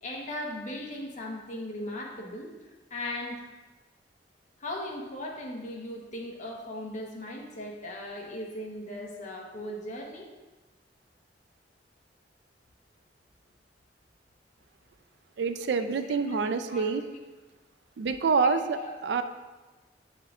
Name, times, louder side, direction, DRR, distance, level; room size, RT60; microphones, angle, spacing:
voice 1, 0.0-3.5 4.6-10.3 15.8-16.4 16.7-17.0 18.4-19.0, left 1 dB, 45° left, -1 dB, 1.1 m, -38 dB
voice 2, 15.4-17.0 18.0-18.8 19.0-19.2, right 5 dB, 70° right, 9 dB, 0.4 m, -26 dB
8.1 x 5.7 x 2.5 m, 1.2 s
head